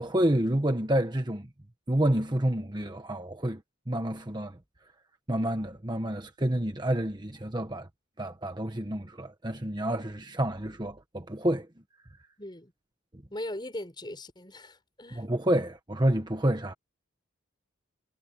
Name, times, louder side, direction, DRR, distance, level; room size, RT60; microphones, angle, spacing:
voice 1, 0.0-1.5 1.9-3.6 3.9-4.6 5.3-7.9 8.2-11.7 15.1-16.7, right 1 dB, 20° right, 1.2 m, -28 dB
voice 2, 12.4-12.7 13.3-15.3, left 1 dB, 20° left, 5.6 m, -39 dB
head